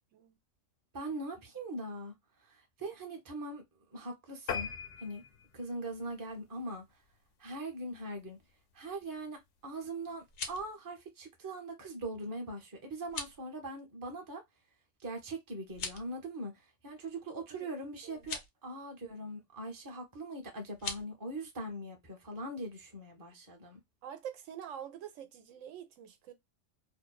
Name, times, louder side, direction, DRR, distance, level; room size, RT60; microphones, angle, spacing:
voice 1, 0.9-2.1 2.5-3.6 3.9-4.7 5.0-5.2 5.5-6.8 7.4-8.4 8.7-14.4 15.0-23.8, right 1 dB, 20° right, 0.6 m, -41 dB
sound 1, 4.5-7.2 7.7-7.9 8.3-8.4 8.7-8.8 9.1-9.2, left 6 dB, 70° left, 0.9 m, -41 dB
sound 2, 10.1-10.7 13.0-13.4 15.7-16.1 18.1-18.5 20.7-21.0, left 5 dB, 90° left, 1.1 m, -40 dB
voice 2, 24.0-26.3, right 9 dB, 75° right, 0.9 m, -46 dB
2.6 x 2.1 x 2.2 m
omnidirectional pair, 1.3 m